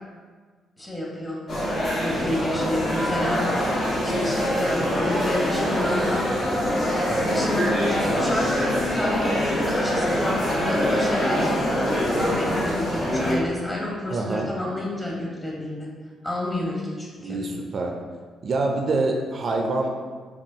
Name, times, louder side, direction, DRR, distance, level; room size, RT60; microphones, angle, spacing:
voice 1, 0.8-1.4 1.9-3.5 4.0-6.3 7.3-15.9 16.2-17.4, left 1 dB, 20° left, -3 dB, 1.3 m, -30 dB
sound 1, 1.5-13.3, equal, 60° left, 1.4 m, -24 dB
voice 2, 7.1-7.4 14.1-14.5 17.2-18.0 18.4-19.9, right 2 dB, 55° right, 2 dB, 0.4 m, -26 dB
5.3 x 2.4 x 2.8 m, 1.5 s
supercardioid pair, 50°, 0 cm